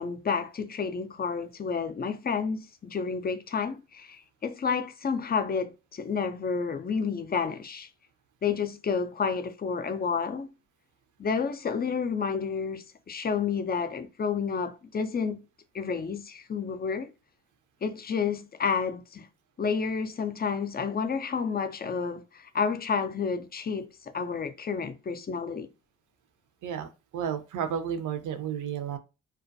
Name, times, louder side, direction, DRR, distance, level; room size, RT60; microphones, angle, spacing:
voice 1, 0.0-7.9 8.4-10.5 11.2-15.4 15.7-17.1 17.8-19.3 19.6-25.7, left 5 dB, 25° left, 0.4 m, -30 dB
voice 2, 27.1-29.0, right 8 dB, 55° right, 0.6 m, -32 dB
2.3 x 2.2 x 2.6 m
hypercardioid pair, 45°, 38 cm